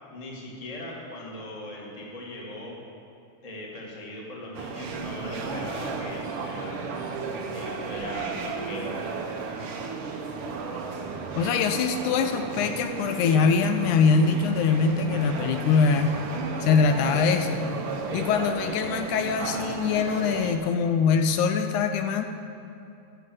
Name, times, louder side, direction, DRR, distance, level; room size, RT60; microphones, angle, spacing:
voice 1, 0.1-2.7 3.4-6.8 7.5-8.9, left 1 dB, 20° left, -3 dB, 1.2 m, -39 dB
sound 1, 4.5-20.6, right 4 dB, 75° right, 1.3 m, -34 dB
voice 2, 11.4-16.2 16.6-17.6 18.1-22.3, left 5 dB, 80° left, 6 dB, 2.0 m, -23 dB
14.0 x 5.7 x 7.6 m, 2.7 s
omnidirectional pair, 3.6 m